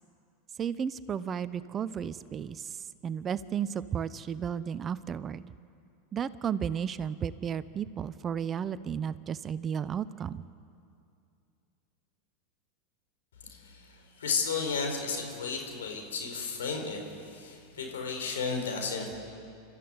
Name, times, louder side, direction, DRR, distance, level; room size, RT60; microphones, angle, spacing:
voice 1, 0.6-5.4 6.1-10.4, right 8 dB, 30° right, 16 dB, 0.7 m, -33 dB
voice 2, 13.4-19.1, left 5 dB, 80° left, 3 dB, 4.5 m, -33 dB
27.0 x 13.5 x 9.6 m, 2.5 s
hypercardioid pair, 100°, 0 cm